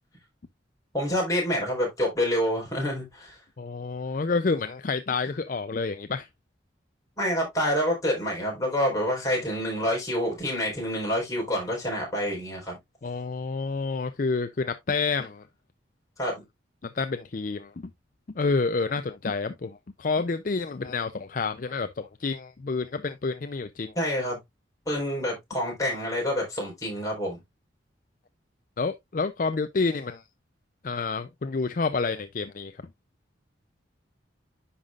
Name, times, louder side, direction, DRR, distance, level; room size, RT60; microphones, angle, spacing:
voice 1, 0.9-3.4 7.2-12.7 16.2-16.4 24.0-24.4 24.9-27.4, equal, 20° left, 4.2 m, -27 dB
voice 2, 3.6-6.3 13.0-15.4 16.8-17.9 18.4-23.9 28.8-30.2 30.8-32.8, left 4 dB, 45° left, 0.4 m, -29 dB
10.0 x 5.6 x 2.4 m
head